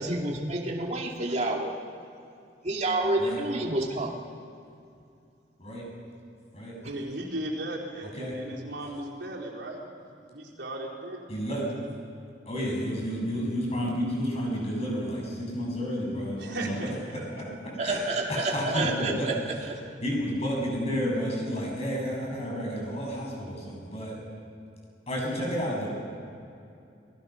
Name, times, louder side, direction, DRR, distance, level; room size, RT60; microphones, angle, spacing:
voice 1, 0.0-1.7 2.6-4.1 17.8-19.8, right 2 dB, 40° right, -1 dB, 2.5 m, -29 dB
voice 2, 6.8-9.8 10.3-11.2 16.4-16.9, right 1 dB, 75° right, -3 dB, 4.3 m, -36 dB
voice 3, 8.0-8.4 11.3-11.7 12.5-19.4 20.0-24.2 25.1-25.9, equal, 35° left, -2 dB, 7.1 m, -31 dB
28.5 x 20.0 x 5.9 m, 2.5 s
head